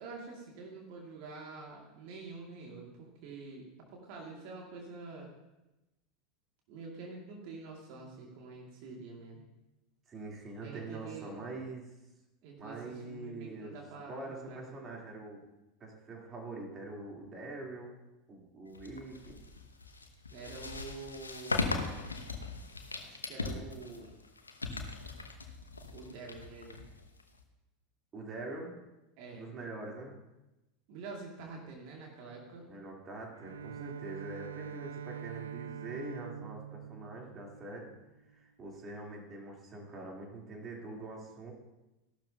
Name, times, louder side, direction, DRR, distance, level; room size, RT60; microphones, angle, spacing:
voice 1, 0.0-5.3 6.7-9.4 10.6-11.3 12.4-14.9 20.3-21.7 23.0-24.1 25.9-26.8 29.2-29.5 30.9-32.6, right 3 dB, 55° right, -1 dB, 2.5 m, -47 dB
voice 2, 10.1-11.9 12.6-13.8 14.1-15.4 15.8-18.0 18.3-19.4 28.1-28.7 29.3-30.2 32.6-37.9 38.3-41.5, right 2 dB, 30° right, -1 dB, 3.6 m, -44 dB
sound 1, 18.7-27.4, left 3 dB, 85° left, 1.1 m, -39 dB
Bowed string instrument, 33.3-38.3, right 8 dB, 75° right, 0.4 m, -44 dB
15.0 x 12.0 x 2.9 m, 0.99 s
figure-of-eight pair, 80°, 0 cm